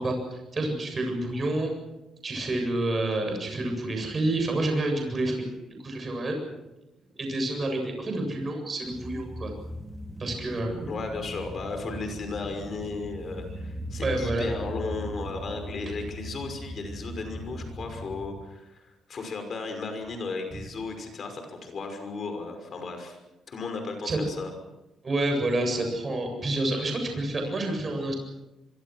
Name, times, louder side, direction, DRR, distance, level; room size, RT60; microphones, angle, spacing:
voice 1, 0.0-1.7 2.2-5.5 5.8-6.4 7.2-9.5 10.2-10.7 13.5-13.6 14.0-14.5 24.0-24.2 25.0-28.1, right 2 dB, 25° right, 4 dB, 7.7 m, -28 dB
sound 1, 8.8-18.3, equal, 5° right, 3.4 m, -38 dB
voice 2, 10.9-23.2 23.5-24.5, left 3 dB, 40° left, 6 dB, 5.8 m, -35 dB
25.5 x 24.5 x 6.3 m, 0.99 s
cardioid pair, 140°, 0 cm